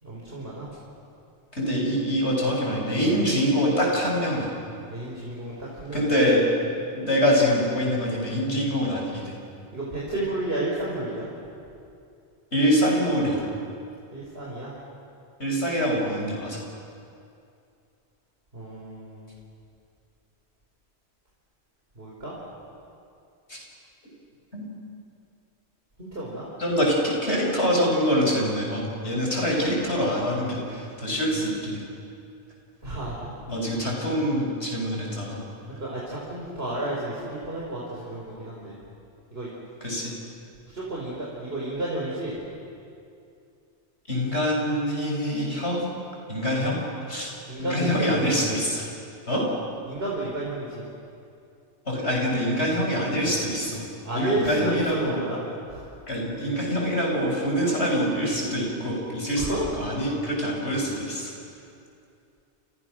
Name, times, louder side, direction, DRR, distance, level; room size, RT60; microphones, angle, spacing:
voice 1, 0.0-0.7 4.9-6.2 9.7-11.2 14.1-14.7 18.5-19.2 22.0-22.3 26.0-26.4 32.8-33.3 35.8-38.8 39.3-39.5 40.7-42.3 47.5-48.4 49.3-49.4 49.9-50.8 54.0-55.4 55.7-55.8 59.4-59.7, right 2 dB, 65° right, -5 dB, 5.0 m, -31 dB
voice 2, 1.5-4.5 5.9-6.4 6.9-9.3 12.5-13.5 15.4-16.6 23.5-23.6 24.5-24.7 26.6-31.8 33.5-35.4 39.8-40.1 44.1-45.8 46.3-46.8 47.1-47.3 47.6-48.8 49.3-49.4 51.9-53.8 54.1-55.2 56.1-61.3, equal, 75° left, -2 dB, 6.8 m, -25 dB
29.5 x 29.0 x 6.4 m, 2.6 s
omnidirectional pair, 1.1 m